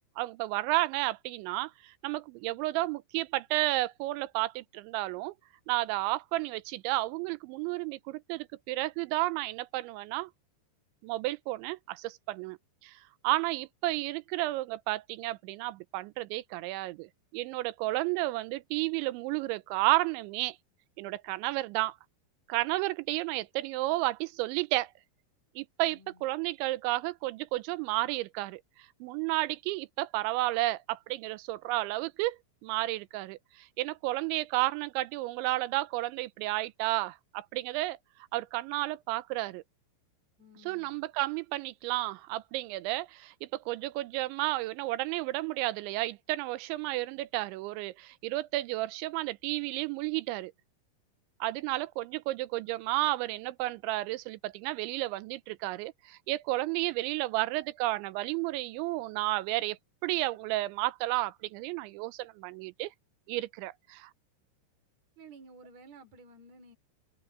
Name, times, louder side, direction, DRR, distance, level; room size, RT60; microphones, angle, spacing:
voice 1, 0.2-5.3 5.7-10.3 11.0-12.6 12.8-20.6 21.0-22.0 22.5-24.9 25.6-28.6 29.0-38.0 38.3-39.6 40.7-50.5 51.4-62.9 63.3-64.1, right 18 dB, 85° right, 3.1 m, -32 dB
voice 2, 25.9-26.3 40.4-41.1 65.2-66.7, right 2 dB, 40° right, 5.8 m, -53 dB
omnidirectional pair, 5.2 m